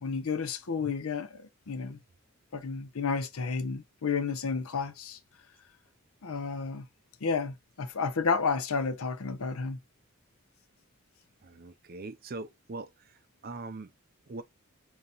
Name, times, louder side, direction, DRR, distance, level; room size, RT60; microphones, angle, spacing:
voice 1, 0.0-2.0 2.5-5.2 6.2-6.9 7.2-9.8, left 5 dB, 80° left, 0.6 m, -31 dB
voice 2, 11.4-13.9 14.3-14.4, right 3 dB, 45° right, 0.5 m, -42 dB
5.4 x 2.8 x 2.4 m
head